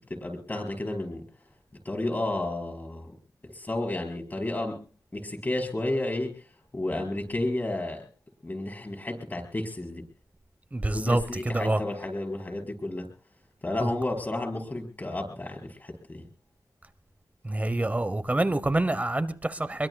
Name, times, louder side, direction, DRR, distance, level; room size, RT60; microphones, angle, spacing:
voice 1, 0.1-1.2 1.8-3.1 3.4-4.8 5.1-6.3 6.7-8.1 8.4-10.0 10.9-13.1 13.6-16.2, left 1 dB, 25° left, 5.0 m, -31 dB
voice 2, 10.7-11.8 13.8-13.9 17.4-19.9, right 2 dB, 20° right, 0.9 m, -27 dB
25.0 x 22.5 x 2.3 m
wide cardioid pair, 120°, 7 cm